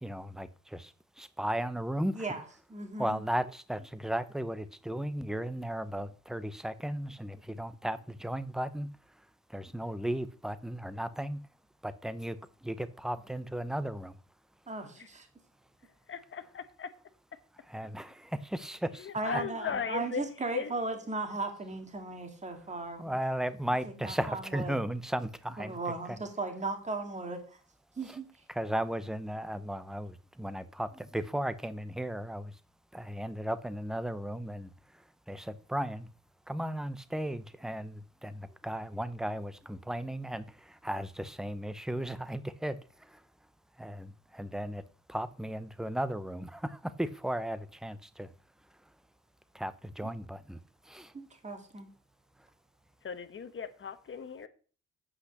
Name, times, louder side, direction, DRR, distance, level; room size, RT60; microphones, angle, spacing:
voice 1, 0.0-2.2 3.0-8.9 9.5-11.4 11.8-14.2 17.7-19.1 23.0-25.8 26.1-26.2 28.1-28.2 28.5-32.5 32.9-36.1 36.5-43.2 43.8-44.8 45.1-48.3 49.5-50.6 50.8-51.1, right 1 dB, ahead, 0.7 m, -35 dB
voice 2, 2.7-3.2 14.7-15.3 19.1-23.2 23.8-24.8 25.6-27.6 28.0-28.3 50.0-50.1 51.1-51.9, right 3 dB, 25° right, 2.1 m, -37 dB
voice 3, 16.1-16.9 19.0-20.2 20.5-20.7 53.0-54.5, left 6 dB, 40° left, 1.1 m, -37 dB
8.4 x 5.6 x 6.6 m
cardioid pair, 90°, 30 cm